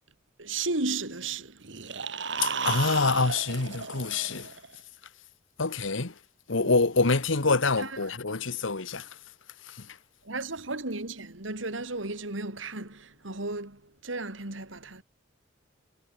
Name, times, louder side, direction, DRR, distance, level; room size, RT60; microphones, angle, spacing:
voice 1, 0.4-1.6 6.6-6.7 7.8-8.0 10.2-15.0, right 3 dB, 90° right, 3.8 m, -34 dB
sound 1, 1.6-4.8, right 5 dB, 65° right, 2.2 m, -34 dB
voice 2, 2.4-4.5 5.6-6.1 6.5-9.2 9.6-10.0, left 3 dB, 90° left, 1.6 m, -26 dB
head